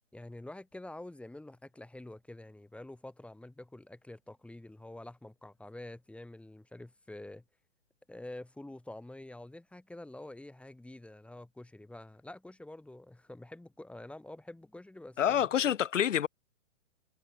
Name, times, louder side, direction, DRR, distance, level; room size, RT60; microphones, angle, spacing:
voice 1, 0.1-7.4 8.1-15.7, left 1 dB, 5° left, 6.5 m, -47 dB
voice 2, 15.2-16.3, left 9 dB, 75° left, 0.8 m, -27 dB
hypercardioid pair, 125°, 37 cm